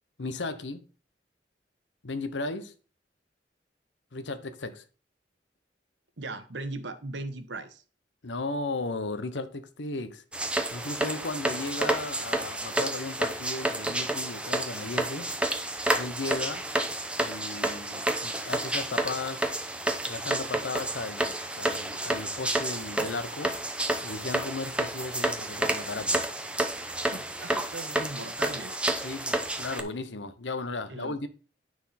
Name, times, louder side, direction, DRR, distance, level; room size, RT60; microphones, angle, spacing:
voice 1, 0.2-0.8 2.0-2.7 4.1-4.8 8.2-10.2 10.7-15.3 15.9-16.7 17.2-19.5 20.0-23.5 24.0-26.2 29.0-31.3, left 3 dB, 85° left, 0.9 m, -35 dB
voice 2, 6.2-7.8 11.6-11.7 27.0-28.8 30.9-31.3, right 2 dB, 80° right, 1.2 m, -39 dB
sound 1, 10.3-29.8, right 1 dB, 5° right, 0.8 m, -30 dB
9.6 x 6.2 x 4.2 m
head